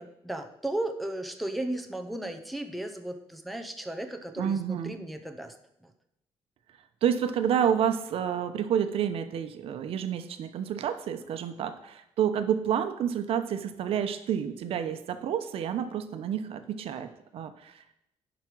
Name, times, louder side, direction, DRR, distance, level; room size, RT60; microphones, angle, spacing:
voice 1, 0.0-5.5 5.8-5.9, right 1 dB, ahead, 4 dB, 0.7 m, -35 dB
voice 2, 4.4-5.0 7.0-17.8, right 8 dB, 70° right, 9 dB, 0.9 m, -29 dB
10.5 x 5.1 x 6.1 m, 0.81 s
cardioid pair, 165°, 10 cm